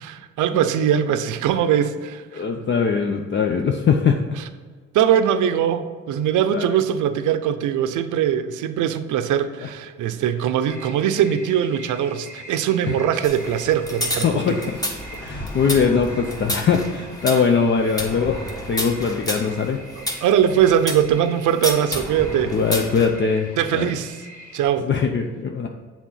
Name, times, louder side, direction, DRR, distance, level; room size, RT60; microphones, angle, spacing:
voice 1, 0.0-2.6 4.9-14.6 19.9-22.6 23.6-24.3 24.5-24.9, right 9 dB, 80° right, 10 dB, 0.6 m, -21 dB
voice 2, 2.3-4.2 6.5-6.7 9.6-9.7 12.9-13.0 14.2-14.8 15.2-19.8 22.5-23.9 24.8-25.7, left 6 dB, 40° left, 3 dB, 0.6 m, -21 dB
sound 1, 10.7-24.6, equal, 80° left, 1.8 m, -43 dB
sound 2, 13.2-21.1 21.6-23.1, equal, 10° left, 1.3 m, -30 dB
7.4 x 3.6 x 5.5 m, 1.5 s
cardioid pair, 90°, 30 cm